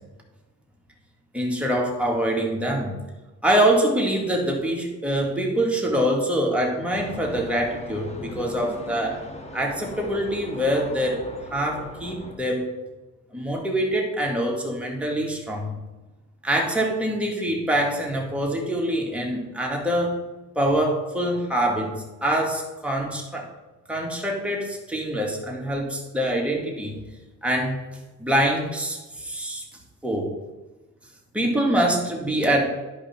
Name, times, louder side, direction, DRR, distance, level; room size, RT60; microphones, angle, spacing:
voice 1, 1.3-3.0 3.4-9.2 9.5-12.7 13.3-15.7 16.4-20.2 20.6-23.5 23.9-27.0 27.4-27.8 28.2-29.6 30.0-30.4 31.3-32.7, right 1 dB, 5° right, -1 dB, 2.1 m, -24 dB
sound 1, 6.9-12.3, left 1 dB, 20° left, 1.2 m, -39 dB
11.0 x 5.1 x 4.3 m, 1.2 s
cardioid pair, 90°, 30 cm